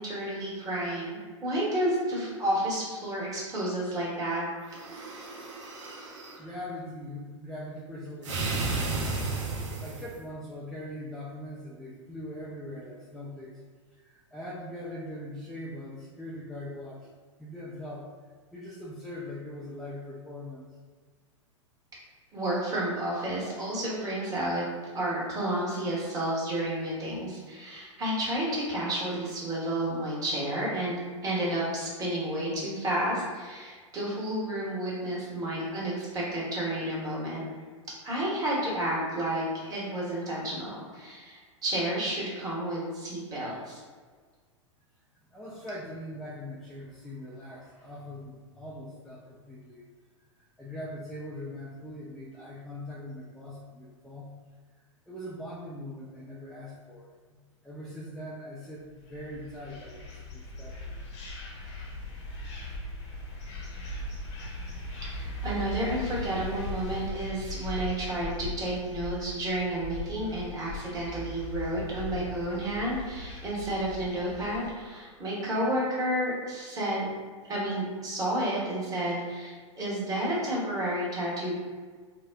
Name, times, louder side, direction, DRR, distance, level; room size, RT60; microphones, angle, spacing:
voice 1, 0.0-4.4 22.3-24.6 24.9-30.9 31.2-37.4 38.0-43.8 65.0-77.1 77.5-81.5, right 1 dB, 20° right, -6 dB, 1.1 m, -31 dB
sound 1, 4.6-6.4 8.2-10.2, right 3 dB, 65° right, 0.6 m, -33 dB
voice 2, 6.4-9.1 9.8-13.6 13.9-17.1 17.4-18.1 18.5-20.8 45.3-49.8 50.4-54.3 55.1-61.0, left 1 dB, ahead, -6 dB, 0.3 m, -41 dB
sound 2, 59.0-74.7, left 2 dB, 55° left, 0.9 m, -39 dB
4.0 x 2.0 x 2.2 m, 1.5 s
figure-of-eight pair, 100°, 17 cm